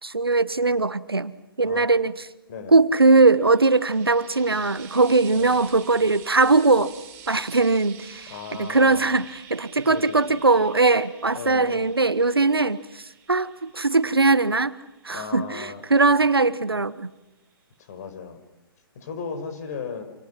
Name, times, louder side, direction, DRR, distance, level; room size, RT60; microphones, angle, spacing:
voice 1, 0.0-2.3 2.7-6.9 7.3-8.3 8.6-13.0 13.3-14.7 15.0-17.1, right 3 dB, 80° right, 15 dB, 1.4 m, -20 dB
Frying (food), 3.2-16.5 17.5-17.6, right 8 dB, 20° right, 7.8 m, -48 dB
voice 2, 8.3-9.2 9.9-10.4 11.3-11.9 15.1-15.8 17.8-18.4 18.9-20.0, left 5 dB, 45° left, 8 dB, 5.1 m, -36 dB
29.0 x 27.5 x 5.8 m, 0.93 s
figure-of-eight pair, 125°, 12 cm